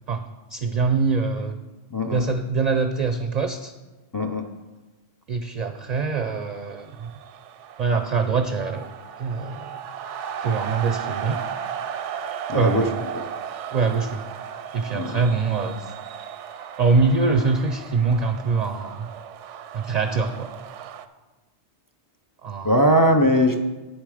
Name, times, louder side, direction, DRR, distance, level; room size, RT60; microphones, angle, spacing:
voice 1, 0.5-1.6 2.1-3.7 5.3-7.1 7.8-8.8 9.2-9.8 10.4-11.4 12.5-13.0 13.7-14.2 14.7-15.9 16.8-19.1 19.7-20.5 22.4-22.8, right 4 dB, 55° right, 7 dB, 0.5 m, -24 dB
voice 2, 1.9-2.2 4.1-4.5 12.5-12.9 13.1-13.2 14.9-15.2 22.6-23.6, equal, 30° left, 5 dB, 0.4 m, -20 dB
sound 1, 6.3-21.1, right 8 dB, 90° right, 0.9 m, -35 dB
9.5 x 7.2 x 4.9 m, 1.2 s
omnidirectional pair, 1.2 m